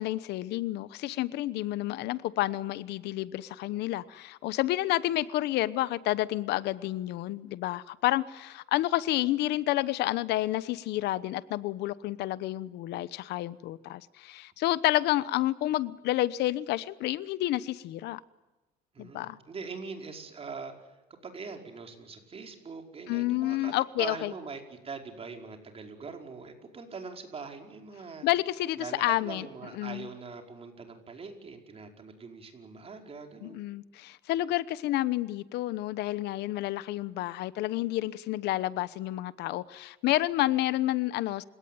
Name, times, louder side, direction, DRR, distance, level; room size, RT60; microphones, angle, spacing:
voice 1, 0.0-18.2 19.0-19.4 23.1-24.3 28.2-29.5 29.8-30.1 33.4-41.4, left 15 dB, 85° left, 17 dB, 1.0 m, -30 dB
voice 2, 18.9-23.7 24.0-28.3 28.8-33.7, right 4 dB, 35° right, 4 dB, 5.2 m, -42 dB
29.5 x 18.0 x 9.5 m, 1.1 s
cardioid pair, 110°, 17 cm